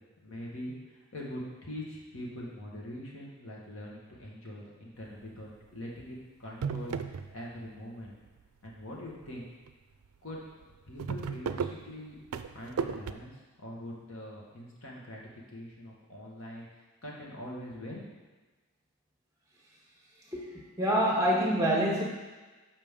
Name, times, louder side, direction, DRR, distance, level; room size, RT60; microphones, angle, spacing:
voice 1, 0.2-6.9 7.3-8.1 8.6-9.5 10.2-10.4 10.9-12.2 12.4-13.3 13.6-15.2 15.5-16.7 17.0-18.0, left 1 dB, 65° left, -3 dB, 1.5 m, -43 dB
sound 1, 5.2-5.6 6.0-6.1 6.4-7.8 8.1-8.7 9.2-9.4 9.7-9.8 10.0-10.1 10.5-13.1, right 6 dB, 85° right, 0.4 m, -35 dB
voice 2, 20.3-22.0, equal, 15° right, -3 dB, 1.3 m, -26 dB
7.3 x 5.2 x 3.6 m, 1.3 s
head